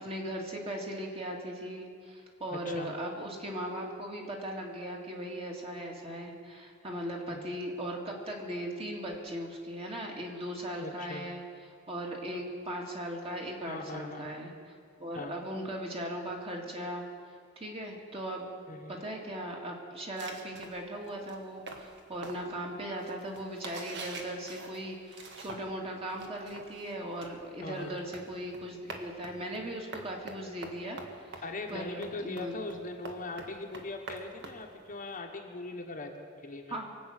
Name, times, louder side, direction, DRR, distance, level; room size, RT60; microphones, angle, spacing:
voice 1, 0.0-11.4 11.9-14.5 15.0-17.1 17.6-18.5 18.9-31.4 31.7-32.5 36.7-36.9, right 1 dB, 30° right, -1 dB, 2.4 m, -38 dB
voice 2, 2.5-2.9 7.3-7.5 10.8-11.3 13.7-14.4 15.1-15.4 18.7-19.0 27.6-28.0 31.4-36.8, left 2 dB, 40° left, 3 dB, 1.3 m, -40 dB
sound 1, 20.2-25.8 26.1-35.2, right 2 dB, 60° right, 1.7 m, -46 dB
23.5 x 8.5 x 6.6 m, 2.3 s
head